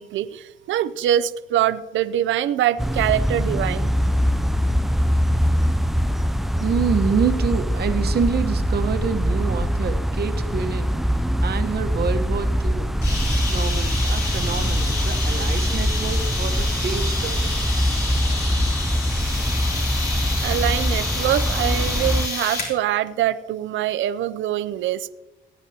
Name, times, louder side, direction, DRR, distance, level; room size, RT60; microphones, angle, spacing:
voice 1, 0.0-3.9 20.4-25.1, right 11 dB, 75° right, 13 dB, 0.5 m, -24 dB
sound 1, 2.8-22.3, equal, ahead, 0.3 m, -23 dB
voice 2, 6.6-11.0 11.4-12.9 13.5-17.6, right 6 dB, 55° right, 7 dB, 1.1 m, -27 dB
sound 2, 13.0-22.8, left 2 dB, 55° left, 3.3 m, -29 dB
18.0 x 8.9 x 2.8 m, 0.99 s
cardioid pair, 90°, 20 cm